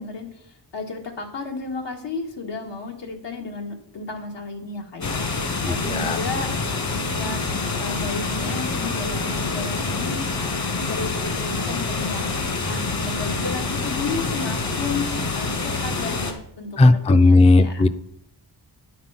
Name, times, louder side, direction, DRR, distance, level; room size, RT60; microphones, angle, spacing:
voice 1, 0.0-6.5 6.9-7.4 7.7-12.3 12.6-17.8, left 4 dB, 85° left, 2 dB, 1.9 m, -33 dB
sound 1, 5.0-16.3, left 3 dB, 55° left, 1.9 m, -26 dB
voice 2, 5.6-6.2 16.8-17.9, left 2 dB, 15° left, 12 dB, 0.4 m, -15 dB
9.9 x 5.9 x 5.7 m, 0.77 s
wide cardioid pair, 90°, 42 cm